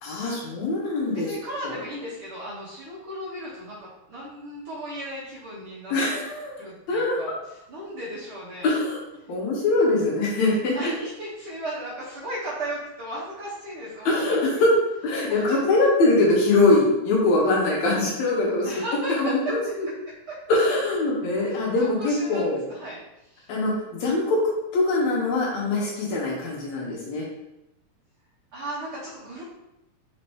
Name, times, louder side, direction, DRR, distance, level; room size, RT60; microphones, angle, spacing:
voice 1, 0.0-1.3 1.6-1.8 5.9-6.6 6.9-7.2 8.6-9.0 9.3-10.9 14.1-14.7 15.0-18.7 19.1-19.9 20.5-22.6 23.5-24.4 24.7-27.3, left 2 dB, 75° left, -3 dB, 2.2 m, -23 dB
voice 2, 1.1-6.0 6.6-7.3 7.7-8.7 10.7-14.4 15.3-15.6 18.6-19.5 20.3-20.4 21.5-23.5 28.5-29.4, right 1 dB, 65° right, -7 dB, 1.5 m, -35 dB
5.1 x 2.8 x 3.2 m, 0.91 s
omnidirectional pair, 3.4 m